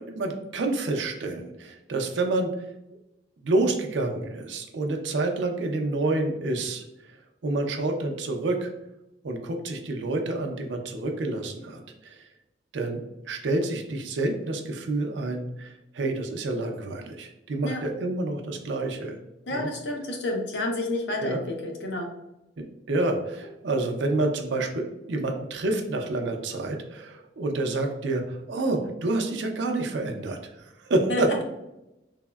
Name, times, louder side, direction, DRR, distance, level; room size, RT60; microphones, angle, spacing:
voice 1, 0.0-2.5 3.4-6.8 7.4-8.7 9.2-12.2 12.7-19.2 19.5-19.7 21.2-21.4 22.6-31.3, right 2 dB, 85° right, 3 dB, 0.5 m, -28 dB
voice 2, 19.5-22.1 31.1-31.4, left 2 dB, 75° left, 1 dB, 0.6 m, -30 dB
3.5 x 2.0 x 2.2 m, 0.91 s
head